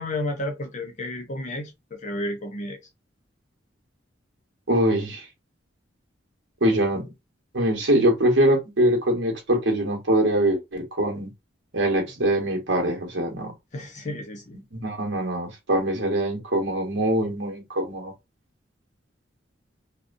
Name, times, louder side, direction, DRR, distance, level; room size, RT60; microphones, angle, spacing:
voice 1, 0.0-2.8 13.7-14.6, left 1 dB, 40° left, 0.7 m, -32 dB
voice 2, 4.7-5.2 6.6-7.1 7.5-11.3 11.7-13.5 14.5-18.1, right 1 dB, 70° right, 1.0 m, -23 dB
2.7 x 2.1 x 2.5 m
head